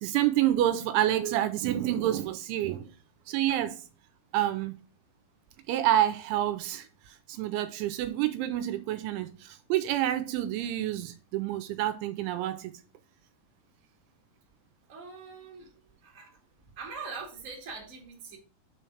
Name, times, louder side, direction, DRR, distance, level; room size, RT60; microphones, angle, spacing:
voice 1, 0.0-2.9 3.3-3.8 4.3-4.7 5.7-12.7, right 12 dB, 80° right, 2.9 m, -28 dB
voice 2, 14.9-15.7 16.0-16.4 16.8-18.4, right 4 dB, 30° right, 1.6 m, -42 dB
6.3 x 4.6 x 6.2 m
omnidirectional pair, 5.6 m